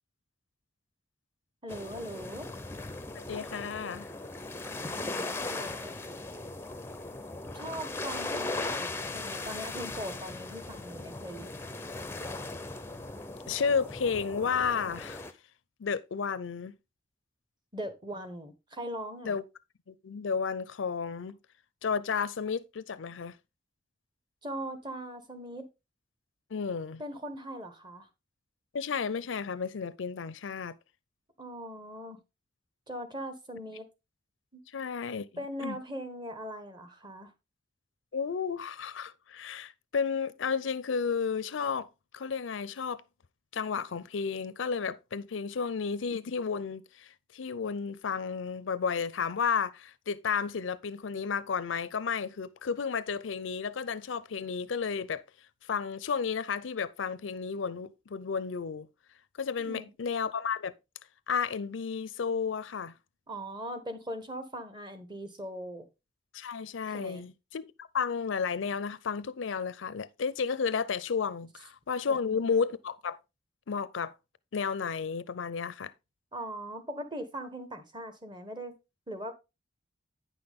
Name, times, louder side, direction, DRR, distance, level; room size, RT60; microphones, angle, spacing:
voice 1, 1.6-2.5 5.2-5.9 7.5-11.5 17.7-19.3 24.4-25.7 27.0-28.1 31.4-32.2 32.9-33.9 34.5-34.6 35.4-37.3 59.7-59.9 63.3-65.9 66.9-67.2 72.1-72.2 76.3-78.7 79.1-79.3, equal, 25° right, 1.2 m, -40 dB
sound 1, 1.7-15.3, left 2 dB, 15° left, 0.6 m, -38 dB
voice 2, 3.1-4.1 13.5-15.2 15.8-16.7 19.2-19.4 19.9-21.4 21.8-23.4 26.5-27.0 28.7-30.8 34.7-35.8 38.1-41.9 42.1-43.0 43.5-55.2 55.7-58.9 59.4-60.7 61.3-62.9 66.3-73.2 73.7-74.1 74.5-75.9, left 6 dB, 80° left, 0.5 m, -32 dB
9.2 x 6.0 x 3.6 m
head